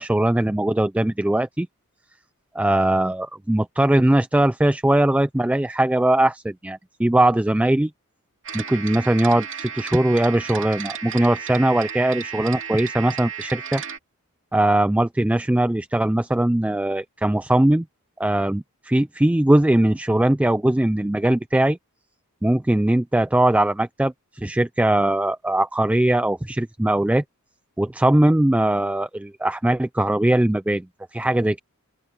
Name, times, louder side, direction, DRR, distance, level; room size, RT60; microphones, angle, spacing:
voice 1, 0.0-1.7 2.5-7.9 8.5-13.8 14.5-17.9 18.2-21.8 22.4-27.2 27.8-30.9 31.1-31.6, right 1 dB, 5° right, 0.3 m, -20 dB
sound 1, 8.4-14.0, right 7 dB, 60° right, 3.0 m, -34 dB
open air
head